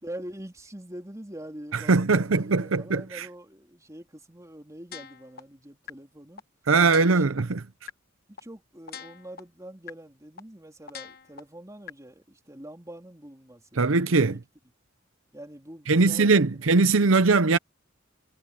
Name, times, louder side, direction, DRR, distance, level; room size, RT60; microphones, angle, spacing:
voice 1, 0.0-6.4 6.9-7.6 8.3-14.4 15.3-16.7, right 1 dB, 15° right, 3.6 m, -44 dB
voice 2, 1.9-3.3 6.7-7.6 13.8-14.4 15.9-17.6, right 3 dB, 85° right, 0.8 m, -21 dB
sound 1, 4.9-5.4 5.9-6.0 6.4-6.5 6.9-7.4 7.9-8.0 8.4-8.5 8.9-9.4 9.9-10.0 10.4-10.5 10.9-11.4 11.9-12.0, left 8 dB, 50° left, 1.2 m, -41 dB
head